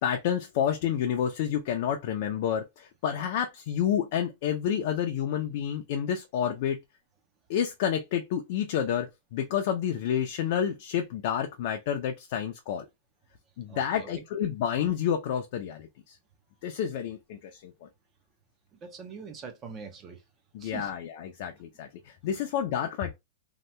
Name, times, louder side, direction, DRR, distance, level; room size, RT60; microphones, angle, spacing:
voice 1, 0.0-6.8 7.5-12.9 13.6-16.2 16.6-17.9 20.5-23.1, left 9 dB, 40° left, 0.4 m, -29 dB
voice 2, 13.7-14.2 18.8-20.2 20.6-20.9, right 5 dB, 20° right, 0.4 m, -43 dB
2.7 x 2.2 x 3.1 m
supercardioid pair, 175°, 0 cm